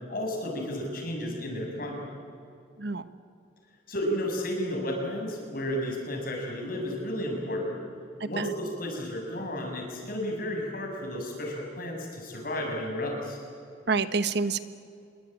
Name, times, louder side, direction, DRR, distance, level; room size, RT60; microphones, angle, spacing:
voice 1, 0.1-2.0 3.9-7.8 8.2-13.4, equal, 50° left, 1 dB, 7.2 m, -32 dB
voice 2, 13.9-14.6, right 4 dB, 60° right, 12 dB, 1.2 m, -27 dB
27.0 x 22.5 x 9.2 m, 2.4 s
head